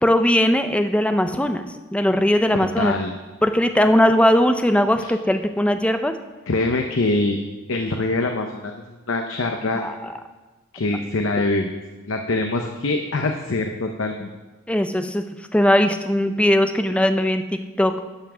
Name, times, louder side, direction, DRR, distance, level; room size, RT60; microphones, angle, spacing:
voice 1, 0.0-2.9 3.4-6.1 9.8-9.9 14.7-15.2 15.5-17.4 17.8-17.9, left 1 dB, 5° left, 8 dB, 0.5 m, -19 dB
voice 2, 2.8-3.1 5.0-5.1 6.5-7.4 7.7-9.8 10.7-11.7 12.1-14.3, left 2 dB, 70° left, 4 dB, 0.7 m, -24 dB
12.0 x 5.8 x 6.2 m, 1.2 s
head